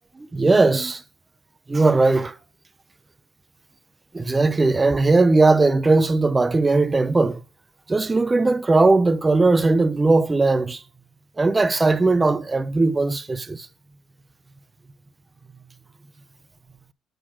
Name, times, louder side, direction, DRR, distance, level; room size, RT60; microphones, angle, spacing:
voice 1, 0.2-1.0 1.7-2.3 4.1-7.4 7.9-10.8 11.4-13.7, right 3 dB, 20° right, 0.4 m, -18 dB
7.8 x 4.1 x 5.9 m
supercardioid pair, 85°, 0 cm